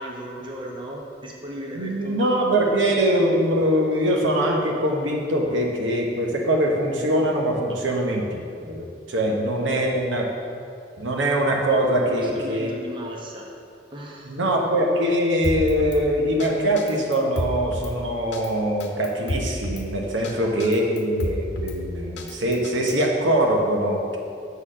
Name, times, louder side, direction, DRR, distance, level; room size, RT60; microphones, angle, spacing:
voice 1, 0.0-2.4 9.2-10.0 10.2-10.4 12.1-13.5 13.9-14.4 20.1-20.5, right 1 dB, 25° right, -1 dB, 0.9 m, -36 dB
voice 2, 1.7-8.4 8.7-10.2 11.0-12.7 14.3-24.2, right 1 dB, 80° right, 0 dB, 1.0 m, -22 dB
Drum kit, 15.4-16.0 16.4-16.5 16.8-17.9 18.3-18.5 18.8-19.8 20.2-20.3 20.6-21.8 22.2-23.1, left 1 dB, 65° left, 0.9 m, -30 dB
7.3 x 4.3 x 6.2 m, 2.4 s
head